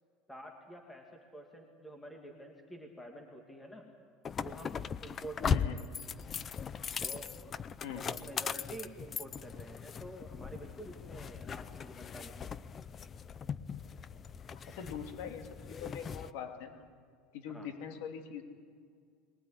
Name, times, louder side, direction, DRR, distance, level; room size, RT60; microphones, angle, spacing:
voice 1, 0.3-3.9 4.4-5.9 7.0-7.3 7.8-12.5 17.5-17.7, right 1 dB, 5° left, 2 dB, 2.3 m, -48 dB
sound 1, 4.2-16.3, left 7 dB, 25° left, 0.6 m, -39 dB
voice 2, 5.5-5.8 7.8-8.1 14.7-16.9 17.3-18.4, left 7 dB, 75° left, 6 dB, 2.8 m, -43 dB
21.5 x 19.5 x 10.0 m, 2.1 s
supercardioid pair, 145°, 0 cm